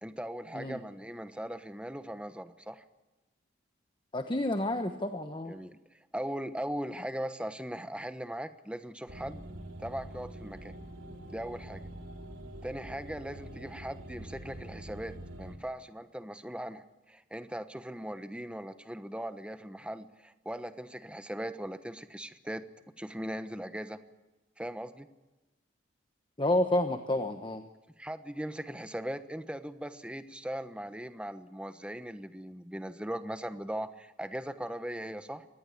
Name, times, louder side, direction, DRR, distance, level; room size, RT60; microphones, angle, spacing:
voice 1, 0.0-2.8 5.5-5.8 6.1-9.4 9.8-10.7 11.3-11.8 12.6-22.7 23.0-24.0 24.6-25.1 28.0-35.5, right 1 dB, 5° right, 10 dB, 1.1 m, -39 dB
voice 2, 4.1-5.5 26.4-27.6, left 1 dB, 25° left, 7 dB, 1.2 m, -29 dB
sound 1, 9.1-15.6, right 1 dB, 85° right, 3.2 m, -45 dB
25.0 x 20.0 x 8.5 m, 1.1 s
head